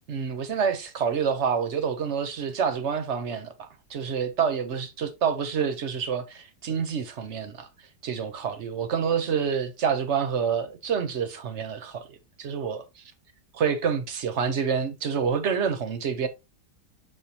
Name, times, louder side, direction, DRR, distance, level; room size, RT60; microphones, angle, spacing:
voice 1, 0.1-7.7 8.0-13.0 13.5-16.3, right 6 dB, 50° right, 1.1 m, -28 dB
6.3 x 5.5 x 2.9 m
omnidirectional pair, 1.8 m